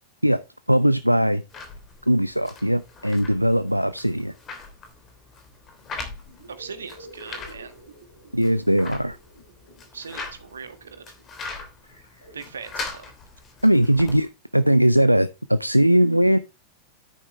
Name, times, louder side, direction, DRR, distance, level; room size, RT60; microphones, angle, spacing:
voice 1, 0.7-1.4 2.1-4.3 8.3-9.2 13.6-16.4, equal, 90° right, 0.4 m, -20 dB
sound 1, 1.5-14.3, left 4 dB, 25° left, 3.1 m, -41 dB
sound 2, 5.5-12.6, right 1 dB, 80° left, 4.6 m, -50 dB
voice 2, 6.5-7.7 9.9-11.0 12.3-13.1, right 5 dB, 70° right, 1.5 m, -39 dB
10.0 x 8.9 x 3.2 m
figure-of-eight pair, 90°, 0 cm